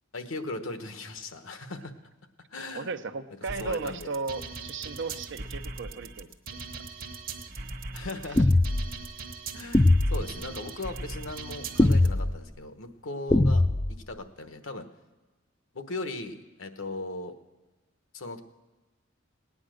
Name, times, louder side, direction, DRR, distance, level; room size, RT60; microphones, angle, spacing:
voice 1, 0.1-1.9 2.5-2.9 3.6-4.1 7.9-8.5 9.5-13.6 13.9-14.9 15.7-17.3 18.1-18.4, left 2 dB, 75° left, 8 dB, 1.2 m, -38 dB
voice 2, 2.7-6.3 6.7-6.8, right 4 dB, 65° right, 10 dB, 0.7 m, -35 dB
sound 1, 3.5-12.1, right 3 dB, 45° right, 1.2 m, -40 dB
sound 2, 8.4-8.9 9.7-10.3 11.8-12.3 13.3-14.0, left 2 dB, 15° left, 0.4 m, -21 dB
18.0 x 9.8 x 6.4 m, 1.2 s
head